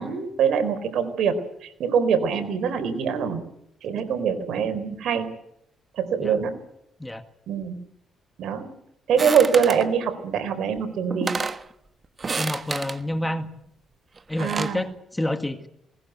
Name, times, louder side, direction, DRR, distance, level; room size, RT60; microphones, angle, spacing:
voice 1, 0.0-1.4 1.6-3.4 3.8-5.3 6.0-6.6 7.5-7.7 8.4-8.7 9.1-11.4 14.4-14.9, right 7 dB, 75° right, 8 dB, 4.2 m, -24 dB
sound 1, 9.2-9.9 10.8-10.9 11.1-11.6 12.2-13.0 14.2-14.8, right 4 dB, 35° right, 1.3 m, -30 dB
voice 2, 12.4-13.5 14.3-15.7, left 1 dB, 10° left, 9 dB, 1.8 m, -28 dB
20.0 x 19.5 x 8.1 m, 0.76 s
cardioid pair, 90°, 0 cm